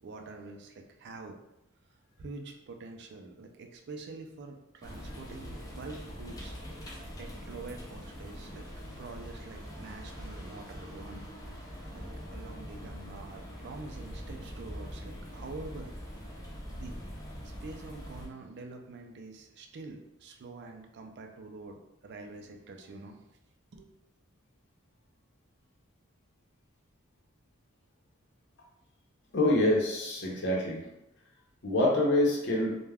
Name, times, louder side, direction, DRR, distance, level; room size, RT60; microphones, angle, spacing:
voice 1, 0.0-1.4 2.2-6.6 7.2-8.7 9.0-11.3 11.5-11.6 11.9-12.1 12.3-15.9 16.7-17.0 17.4-23.2 23.7-23.9, right 3 dB, 55° right, 3 dB, 0.4 m, -46 dB
rain near ending, 4.8-18.3, equal, 20° left, 0.5 m, -43 dB
voice 2, 29.3-30.8 31.6-32.8, left 1 dB, 60° left, -3 dB, 0.7 m, -26 dB
2.3 x 2.1 x 3.3 m, 0.88 s
head